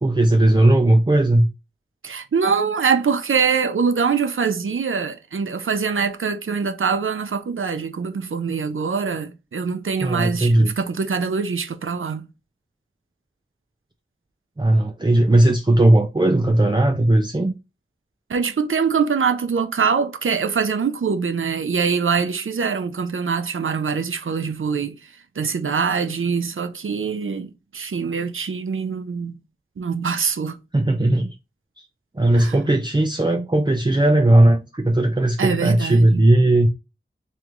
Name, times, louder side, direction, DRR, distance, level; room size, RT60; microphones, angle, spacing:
voice 1, 0.0-1.5 10.0-10.7 14.6-17.5 30.7-31.3 31.8-31.9 32.1-36.7, right 1 dB, 20° right, 0.5 m, -17 dB
voice 2, 2.0-12.3 18.3-25.0 25.4-29.3 29.8-30.6 32.3-32.5 35.4-36.2, right 5 dB, 90° right, 0.5 m, -23 dB
3.2 x 3.1 x 3.6 m
wide cardioid pair, 50°, 20 cm